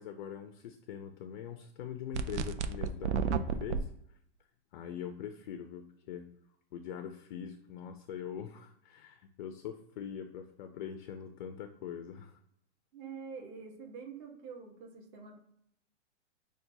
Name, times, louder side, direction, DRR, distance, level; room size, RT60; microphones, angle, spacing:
voice 1, 0.0-3.9 4.7-6.3 6.7-12.4, left 8 dB, 45° left, 8 dB, 0.4 m, -43 dB
sound 1, 2.1-3.8, right 6 dB, 75° right, 0.5 m, -32 dB
voice 2, 12.9-15.4, right 5 dB, 25° right, 1 dB, 0.9 m, -46 dB
5.8 x 2.3 x 2.6 m, 0.72 s
hypercardioid pair, 150°, 35 cm